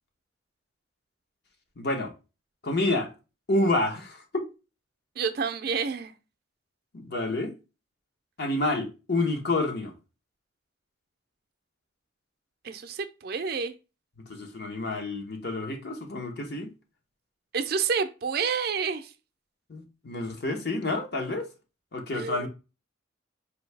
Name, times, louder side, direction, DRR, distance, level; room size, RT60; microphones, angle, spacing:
voice 1, 1.8-2.1 2.6-3.1 3.5-4.5 6.9-7.5 8.4-9.9 14.2-16.7 19.7-21.5 21.9-22.5, left 2 dB, 55° left, 0.9 m, -29 dB
voice 2, 5.2-6.1 12.6-13.7 17.5-19.1 22.1-22.5, right 6 dB, 50° right, 0.4 m, -29 dB
4.6 x 2.7 x 3.2 m
head